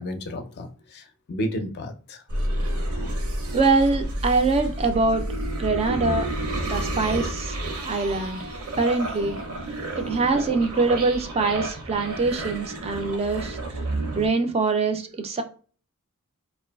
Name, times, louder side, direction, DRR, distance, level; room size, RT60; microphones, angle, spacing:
voice 1, 0.0-2.2, equal, 50° left, 0.4 m, -32 dB
sound 1, 2.3-14.3, right 1 dB, 70° right, 0.7 m, -30 dB
voice 2, 3.5-5.3 5.6-6.3 6.7-8.5 8.8-9.4 10.0-13.6 14.2-15.4, right 3 dB, 25° right, 0.3 m, -23 dB
2.6 x 2.3 x 2.2 m
head